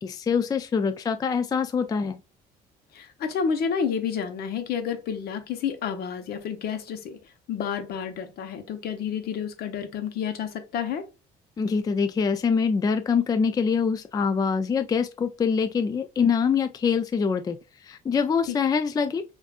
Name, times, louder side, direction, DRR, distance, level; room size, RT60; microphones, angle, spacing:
voice 1, 0.0-2.2 11.6-19.2, left 6 dB, 20° left, 0.3 m, -24 dB
voice 2, 2.9-7.2 7.5-11.1 18.5-18.6, left 7 dB, 65° left, 1.0 m, -30 dB
6.8 x 2.6 x 2.4 m
cardioid pair, 110°, 17 cm